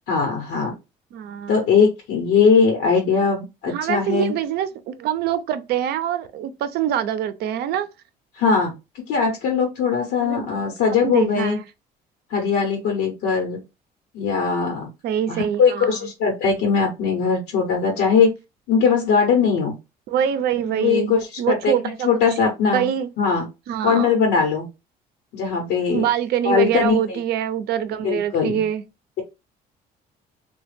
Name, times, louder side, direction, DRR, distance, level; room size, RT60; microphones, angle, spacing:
voice 1, 0.1-0.7 1.5-4.3 8.3-11.6 12.3-13.6 14.1-14.9 15.3-18.3 18.7-19.7 20.8-22.9 23.2-23.5 23.8-24.7 25.3-26.0 26.4-27.2 28.0-28.6, left 5 dB, 80° left, 1.0 m, -20 dB
voice 2, 1.1-1.6 3.7-7.9 10.2-10.7 11.0-11.6 15.0-16.0 20.1-22.2 22.7-23.1 23.7-24.2 25.9-28.8, right 10 dB, 70° right, 0.5 m, -24 dB
3.1 x 2.3 x 3.2 m
cardioid pair, 110°, 17 cm